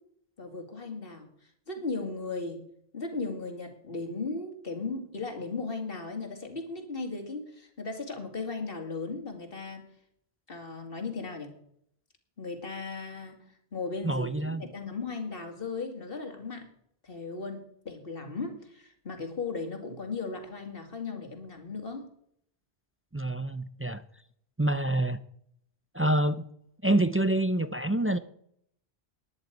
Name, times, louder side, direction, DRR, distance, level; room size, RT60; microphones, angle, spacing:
voice 1, 0.4-1.3 1.7-2.6 2.9-9.9 10.5-11.5 12.4-13.4 13.7-14.3 14.6-16.7 17.0-22.1, left 3 dB, 60° left, 4 dB, 2.5 m, -36 dB
voice 2, 14.0-14.6 23.1-24.0 24.6-25.2 25.9-26.5 26.8-28.2, right 1 dB, 20° right, 13 dB, 0.4 m, -26 dB
10.5 x 8.1 x 9.1 m, 0.69 s
omnidirectional pair, 1.1 m